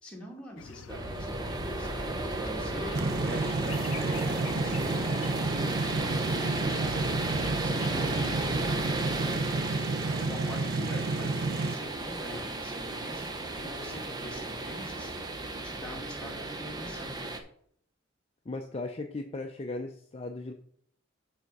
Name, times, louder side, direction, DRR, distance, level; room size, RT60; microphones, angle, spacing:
voice 1, 0.0-8.9 10.2-15.1 15.6-17.2, equal, 5° left, -2 dB, 2.0 m, -44 dB
sound 1, 0.6-8.7, left 7 dB, 85° left, 0.4 m, -46 dB
sound 2, 0.9-17.4, right 2 dB, 20° right, 0.8 m, -34 dB
sound 3, 2.9-11.7, right 3 dB, 55° right, 0.6 m, -31 dB
voice 2, 18.5-20.5, left 2 dB, 30° left, 4 dB, 0.5 m, -37 dB
7.2 x 4.2 x 6.6 m, 0.64 s
head